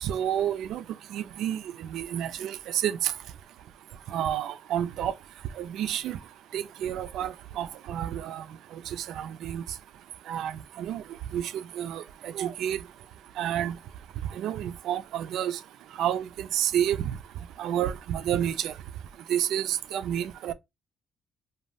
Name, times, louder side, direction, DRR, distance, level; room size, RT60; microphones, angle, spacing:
voice 1, 0.0-0.8 1.1-3.1 4.1-5.1 5.6-6.2 6.5-8.4 8.9-9.6 10.3-11.0 11.3-11.5 11.8-12.8 13.4-13.8 14.4-15.6 16.0-17.1 17.6-18.7 19.3-20.5, right 10 dB, 80° right, 0.3 m, -30 dB
2.6 x 2.3 x 3.3 m
cardioid pair, 90°, 0 cm